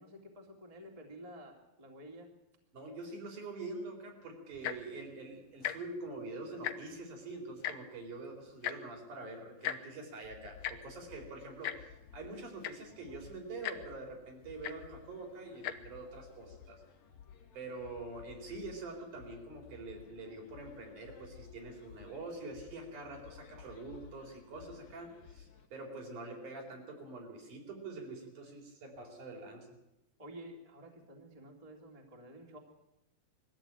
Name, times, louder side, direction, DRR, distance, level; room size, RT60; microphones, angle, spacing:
voice 1, 0.0-2.3 30.2-32.6, equal, 10° right, 1 dB, 2.4 m, -51 dB
voice 2, 2.7-16.8 17.5-29.7, right 2 dB, 60° right, 1 dB, 5.7 m, -45 dB
Tick-tock, 4.5-4.9 5.6-5.8 6.1-6.2 6.5-7.0 7.6-7.8 8.6-8.8 9.6-9.8 10.6-10.7 11.6-11.8 12.3-12.4 12.6-12.9 13.6-13.8 14.6-14.8 15.5-15.7 16.5-16.6, left 11 dB, 70° left, 2.5 m, -36 dB
sound 1, 10.2-25.7, left 7 dB, 55° left, 3.1 m, -56 dB
21.5 x 15.0 x 9.0 m, 0.88 s
omnidirectional pair, 4.2 m